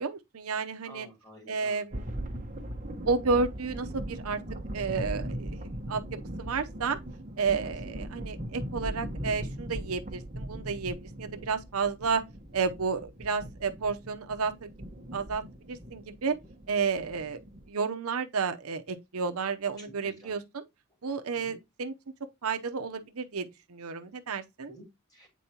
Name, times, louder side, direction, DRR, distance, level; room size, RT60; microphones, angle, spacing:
voice 1, 0.0-1.1 1.5-2.1 3.0-4.4 4.7-6.0 6.4-7.0 7.4-12.2 12.5-14.7 15.1-16.4 16.7-17.4 17.7-20.6 21.0-21.9 22.4-24.8, right 5 dB, 80° right, 0.8 m, -31 dB
voice 2, 0.8-1.8 7.7-7.8 20.0-20.4 21.4-21.5 24.7-25.3, equal, 15° left, 3.0 m, -51 dB
sound 1, 1.9-17.7, right 1 dB, 35° right, 1.2 m, -39 dB
8.3 x 4.6 x 2.9 m
head